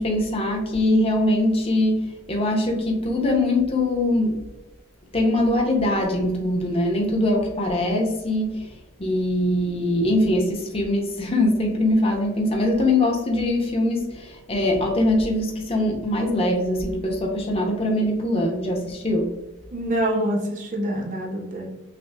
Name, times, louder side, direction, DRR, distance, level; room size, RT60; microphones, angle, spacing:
voice 1, 0.0-4.4 5.1-19.4, left 1 dB, 25° left, 0 dB, 0.6 m, -22 dB
voice 2, 19.7-21.7, right 1 dB, 35° right, 0 dB, 0.5 m, -26 dB
5.7 x 2.0 x 2.2 m, 1.0 s
head